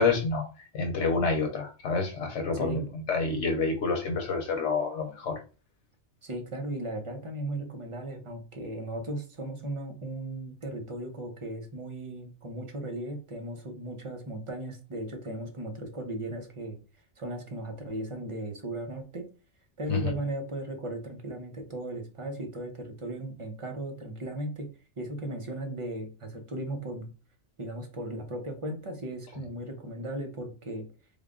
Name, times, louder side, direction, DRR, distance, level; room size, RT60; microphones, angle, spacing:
voice 1, 0.0-5.4 19.9-20.0, left 4 dB, 85° left, 3 dB, 1.0 m, -28 dB
voice 2, 2.5-2.9 6.2-16.8 17.2-19.3 19.8-24.7 25.0-27.1 27.6-30.9, right 1 dB, 35° right, 4 dB, 0.7 m, -36 dB
3.6 x 2.2 x 3.6 m, 0.33 s
omnidirectional pair, 1.2 m